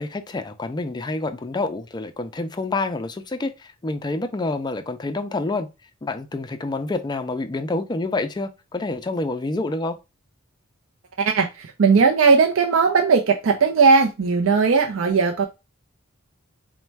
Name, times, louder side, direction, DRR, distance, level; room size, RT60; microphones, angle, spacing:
voice 1, 0.0-5.7 6.0-10.0, left 2 dB, 20° left, 0.3 m, -28 dB
voice 2, 11.2-15.5, right 5 dB, 65° right, 0.4 m, -18 dB
4.1 x 2.1 x 4.5 m
head